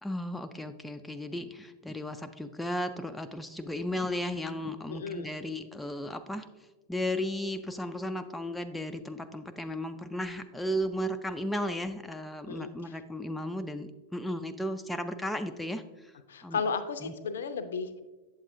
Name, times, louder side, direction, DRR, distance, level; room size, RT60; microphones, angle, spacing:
voice 1, 0.0-6.5 6.9-16.1 16.4-16.6 17.0-17.1, left 1 dB, 5° left, 7 dB, 0.4 m, -35 dB
voice 2, 4.9-5.3 12.5-12.9 16.3-18.0, left 5 dB, 65° left, 11 dB, 0.5 m, -34 dB
8.3 x 7.3 x 2.6 m, 1.2 s
figure-of-eight pair, 90°, 0 cm